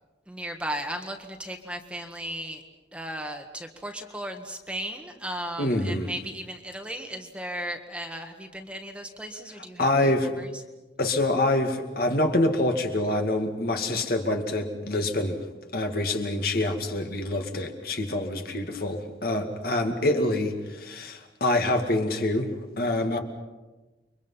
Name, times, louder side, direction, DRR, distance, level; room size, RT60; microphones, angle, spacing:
voice 1, 0.3-2.6 2.9-10.6, equal, 5° right, 4 dB, 1.6 m, -36 dB
voice 2, 5.6-6.1 9.8-10.3 11.0-15.4 15.7-22.5 22.8-23.2, left 1 dB, 50° left, 4 dB, 2.3 m, -26 dB
29.5 x 24.0 x 5.7 m, 1.2 s
head